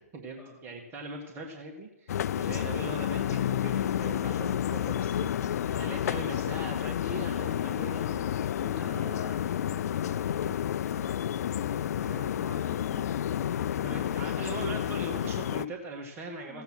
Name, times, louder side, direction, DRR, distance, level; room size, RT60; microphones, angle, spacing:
voice 1, 0.1-9.2 12.0-12.3 13.8-16.6, right 2 dB, 25° right, 1 dB, 1.7 m, -41 dB
sound 1, 2.1-15.7, left 10 dB, 65° left, 0.4 m, -30 dB
voice 2, 5.6-6.2 7.4-7.6 8.7-13.2 16.5-16.6, equal, ahead, -5 dB, 2.5 m, -48 dB
15.0 x 8.2 x 6.1 m, 0.93 s
hypercardioid pair, 130°, 9 cm